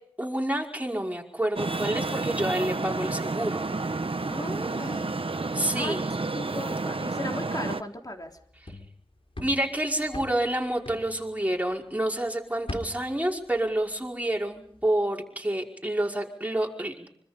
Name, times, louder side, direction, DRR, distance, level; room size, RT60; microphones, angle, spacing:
voice 1, 0.2-3.6 5.5-6.0 9.4-17.1, right 1 dB, 15° right, 0 dB, 5.3 m, -28 dB
Traffic noise roadway noise, 1.6-7.8, right 3 dB, 70° right, 1.1 m, -30 dB
voice 2, 4.2-6.0 6.4-8.4, left 1 dB, 40° left, 2 dB, 3.7 m, -37 dB
sound 1, 8.2-12.0 12.3-14.3 14.6-14.9, left 1 dB, 70° left, 4.3 m, -42 dB
25.5 x 25.0 x 5.3 m, 0.67 s
wide cardioid pair, 45°, 10 cm